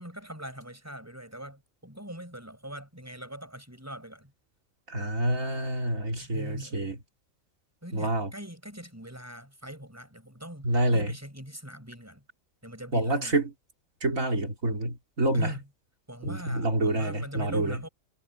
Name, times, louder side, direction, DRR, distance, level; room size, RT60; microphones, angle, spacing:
voice 1, 0.0-4.3 6.2-6.9 7.8-12.2 12.6-13.4 15.3-15.6 16.1-17.9, right 1 dB, 10° right, 6.7 m, -42 dB
voice 2, 4.9-7.0 7.9-8.3 10.6-11.1 12.9-13.5 14.0-15.5 16.2-17.8, right 1 dB, 75° right, 3.8 m, -27 dB
omnidirectional pair, 1.4 m